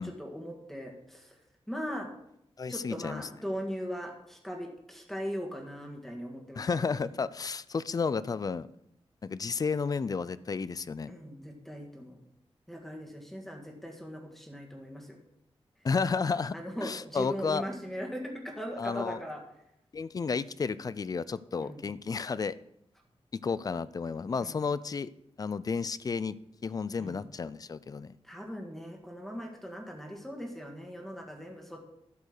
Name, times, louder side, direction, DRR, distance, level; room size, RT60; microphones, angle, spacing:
voice 1, 0.0-1.4 1.7-2.1 2.7-7.0 11.1-12.2 12.7-15.2 16.5-19.4 21.6-21.9 24.4-24.6 27.0-27.2 28.2-31.8, equal, 5° left, 1 dB, 1.6 m, -39 dB
voice 2, 2.6-3.2 6.6-8.7 9.2-11.1 15.8-17.6 18.8-19.2 19.9-22.6 23.3-25.1 25.4-26.4 26.6-28.1, left 5 dB, 35° left, 17 dB, 0.4 m, -32 dB
12.0 x 5.3 x 6.6 m, 0.79 s
wide cardioid pair, 155°, 10 cm